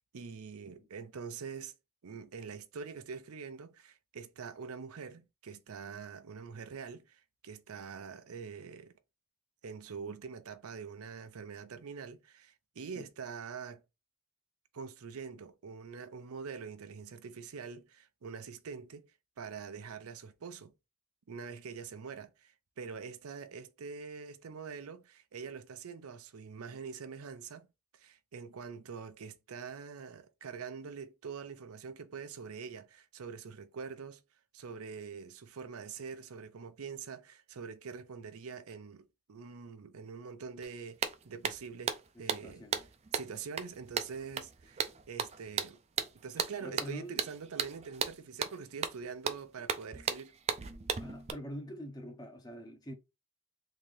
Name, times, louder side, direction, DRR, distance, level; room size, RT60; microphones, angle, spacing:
voice 1, 0.0-1.7 2.0-8.9 9.6-13.8 14.7-19.1 19.4-20.7 21.3-27.7 27.9-34.2 34.5-42.6 43.1-45.8 46.2-50.4, right 5 dB, 85° right, 0.5 m, -45 dB
sound 1, 40.6-40.7 41.0-51.3, right 6 dB, 30° right, 0.4 m, -36 dB
voice 2, 42.4-42.7 46.6-47.2 51.0-52.9, equal, 20° left, 0.7 m, -44 dB
3.7 x 2.8 x 3.2 m
head